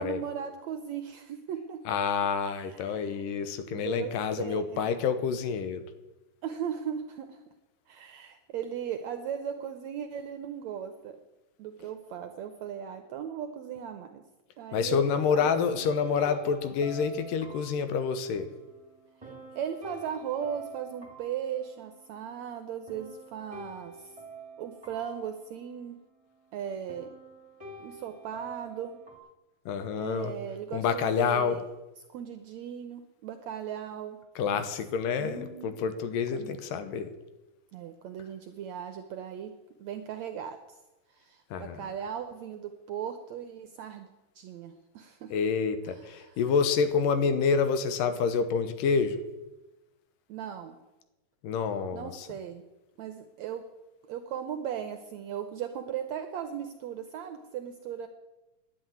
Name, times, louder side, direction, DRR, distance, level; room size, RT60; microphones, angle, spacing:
voice 1, 0.0-1.8 2.4-3.2 3.6-4.8 6.4-7.4 7.9-11.2 11.6-14.2 14.6-15.5 19.5-24.1 24.6-26.0 26.5-27.1 27.8-29.0 29.9-31.6 32.1-34.2 34.4-34.7 35.2-35.7 36.3-36.5 37.7-39.5 39.8-40.8 41.1-44.1 44.3-45.3 45.9-46.3 50.3-50.8 51.9-52.6 53.0-53.6 54.1-58.1, right 8 dB, 75° right, 7 dB, 1.7 m, -37 dB
voice 2, 1.9-5.8 14.7-18.5 29.7-30.4 30.7-31.6 34.4-37.1 41.5-41.9 45.3-49.2 51.4-52.3, left 6 dB, 80° left, 10 dB, 2.6 m, -28 dB
sound 1, 15.8-26.5 26.9-29.2, right 3 dB, 10° right, 1.9 m, -48 dB
11.0 x 8.5 x 9.2 m, 1.0 s
omnidirectional pair, 3.9 m